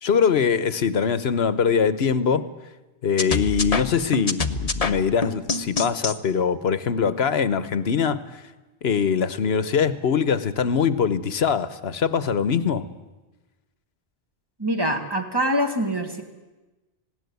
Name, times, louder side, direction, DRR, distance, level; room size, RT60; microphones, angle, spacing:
voice 1, 0.0-2.4 3.0-8.4 8.8-12.9, left 6 dB, 85° left, 13 dB, 1.2 m, -22 dB
sound 1, 3.2-6.2, left 3 dB, 40° left, 1.0 m, -26 dB
voice 2, 14.6-16.2, equal, 25° right, 4 dB, 2.0 m, -24 dB
19.5 x 17.0 x 9.4 m, 1.1 s
omnidirectional pair, 1.0 m